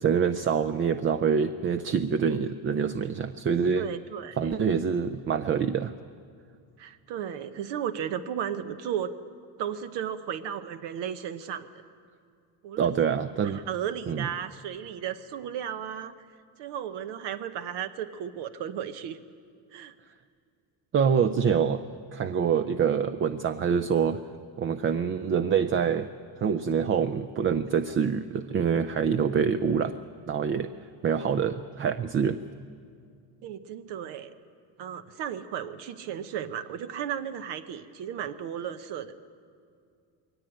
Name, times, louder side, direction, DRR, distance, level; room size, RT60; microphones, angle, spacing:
voice 1, 0.0-3.9 4.4-5.9 12.8-13.6 14.1-14.3 20.9-21.8 22.1-24.2 24.6-26.1 26.4-29.9 30.3-30.7 31.0-32.4, right 7 dB, 30° right, 11 dB, 0.5 m, -25 dB
voice 2, 3.7-4.5 6.8-9.1 9.6-11.7 12.6-12.9 13.5-16.1 16.6-19.2 19.7-19.9 33.4-34.3 34.8-39.1, right 9 dB, 70° right, 9 dB, 1.1 m, -34 dB
22.0 x 18.0 x 8.9 m, 2.3 s
cardioid pair, 140°, 43 cm